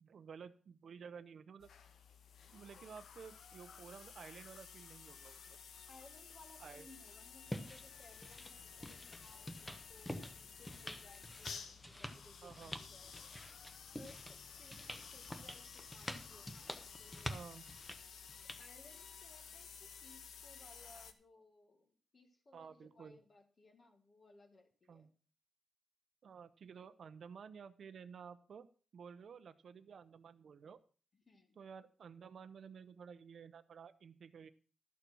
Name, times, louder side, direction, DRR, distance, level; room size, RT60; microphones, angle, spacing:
voice 1, 0.0-1.7 2.5-5.6 6.6-6.9 12.4-12.7 17.3-17.6 22.5-23.2 24.9-25.1 26.2-28.7 28.9-30.8 31.6-34.5, right 6 dB, 60° right, 11 dB, 0.7 m, -53 dB
sound 1, 1.6-21.1, left 6 dB, 85° left, 1.1 m, -54 dB
voice 2, 5.8-13.3 13.5-17.4 18.4-25.1 31.1-31.6, left 2 dB, 35° left, 5 dB, 1.6 m, -63 dB
sound 2, 7.5-18.6, left 1 dB, 10° left, 1.0 m, -48 dB
13.0 x 7.0 x 6.1 m, 0.39 s
wide cardioid pair, 155°, 0 cm